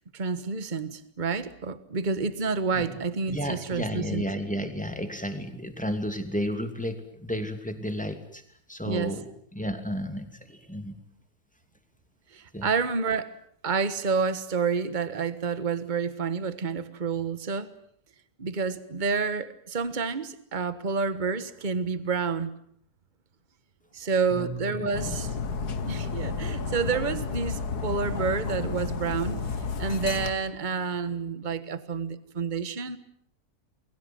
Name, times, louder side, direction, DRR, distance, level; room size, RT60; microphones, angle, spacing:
voice 1, 0.1-4.2 8.8-9.2 12.3-13.4 13.6-17.7 18.4-22.5 23.9-25.3 25.9-33.0, right 5 dB, 30° right, 13 dB, 1.5 m, -29 dB
voice 2, 3.3-8.4 8.7-11.0 12.5-12.7 24.3-25.2, equal, 5° left, 7 dB, 2.7 m, -33 dB
Dog, 24.9-30.3, left 5 dB, 85° left, 2.0 m, -31 dB
29.0 x 22.0 x 7.8 m, 0.64 s
omnidirectional pair, 1.6 m